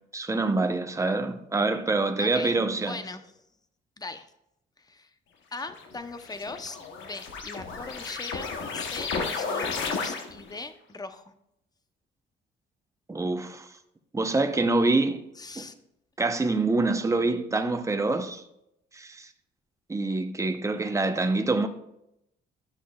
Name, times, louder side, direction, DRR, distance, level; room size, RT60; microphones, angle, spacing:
voice 1, 0.1-3.0 13.1-13.7 14.1-15.2 15.6-15.7 16.2-18.4 18.9-19.3 19.9-21.7, right 3 dB, 15° right, 0.7 m, -26 dB
voice 2, 2.2-2.6 2.9-3.3 4.0-4.3 4.8-5.1 5.5-11.3 15.4-15.7, left 3 dB, 20° left, 0.7 m, -40 dB
sound 1, 5.6-10.6, left 4 dB, 75° left, 1.0 m, -33 dB
11.5 x 6.2 x 2.3 m
cardioid pair, 90°, 20 cm